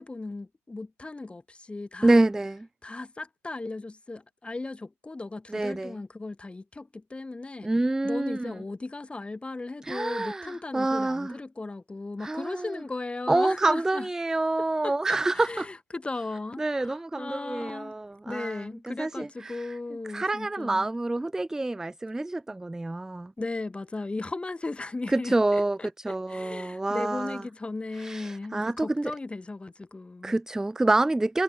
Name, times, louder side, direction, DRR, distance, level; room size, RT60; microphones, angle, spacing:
voice 1, 0.0-2.2 2.8-7.7 8.0-14.1 14.8-17.9 18.3-20.9 23.4-25.3 25.8-30.4, left 3 dB, 15° left, 2.8 m, -36 dB
voice 2, 2.0-2.7 5.5-6.0 7.6-8.5 9.8-11.4 12.2-12.8 13.3-15.7 16.6-19.8 20.1-23.3 25.1-27.4 27.9-29.1 30.2-31.4, right 2 dB, 5° right, 0.4 m, -27 dB
hypercardioid pair, 80°, 8 cm